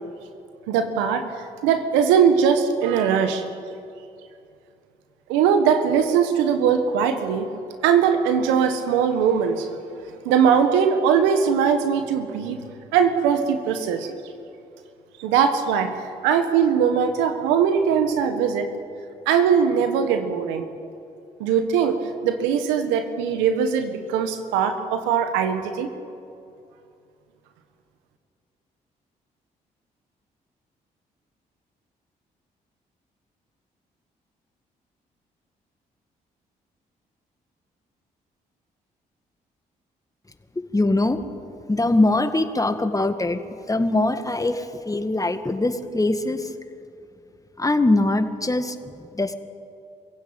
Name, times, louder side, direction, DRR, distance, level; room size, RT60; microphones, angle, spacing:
voice 1, 0.7-1.2 1.6-3.4 5.3-7.5 7.8-9.7 10.2-12.6 12.9-14.1 15.2-18.7 19.2-20.7 21.4-22.0 22.2-25.9, right 7 dB, 85° right, 8 dB, 1.6 m, -20 dB
voice 2, 40.7-41.2 41.7-43.4 43.7-46.5 47.6-49.4, left 2 dB, 20° left, 8 dB, 1.9 m, -22 dB
23.5 x 16.0 x 8.9 m, 2.6 s
hypercardioid pair, 45°, 19 cm